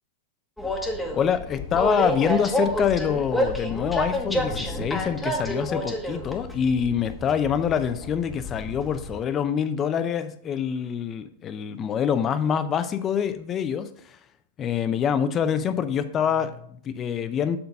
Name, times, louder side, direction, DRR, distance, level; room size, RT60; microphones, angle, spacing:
Train, 0.6-9.2, equal, 5° left, 1.2 m, -29 dB
voice 1, 1.1-14.2 14.6-17.6, left 8 dB, 30° left, 11 dB, 0.6 m, -25 dB
7.1 x 3.9 x 5.3 m, 0.65 s
hypercardioid pair, 110°, 0 cm